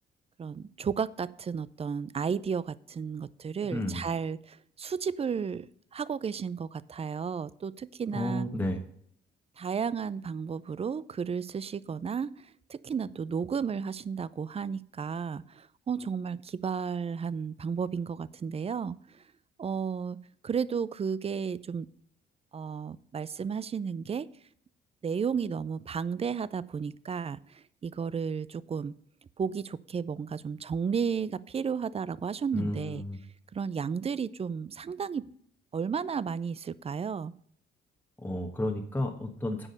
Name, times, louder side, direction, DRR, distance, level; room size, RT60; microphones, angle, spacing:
voice 1, 0.4-5.7 5.9-8.5 9.6-12.3 12.7-19.0 19.6-20.2 20.4-21.9 22.5-24.3 25.0-28.9 29.4-33.0 33.5-35.2 35.7-37.3, right 6 dB, 30° right, 19 dB, 0.5 m, -33 dB
voice 2, 3.7-4.0 8.1-8.8 32.5-33.2 38.2-39.7, left 1 dB, 10° left, 3 dB, 1.2 m, -32 dB
9.7 x 5.1 x 6.5 m, 0.65 s
cardioid pair, 90°, 20 cm